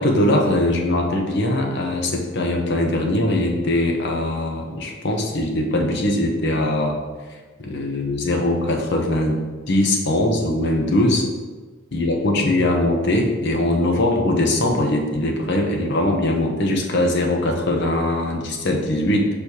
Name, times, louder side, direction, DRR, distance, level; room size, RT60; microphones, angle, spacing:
voice 1, 0.0-7.0 7.6-9.4 9.7-11.2 11.9-19.3, left 1 dB, 55° left, 2 dB, 0.8 m, -21 dB
6.3 x 5.2 x 2.8 m, 1.3 s
head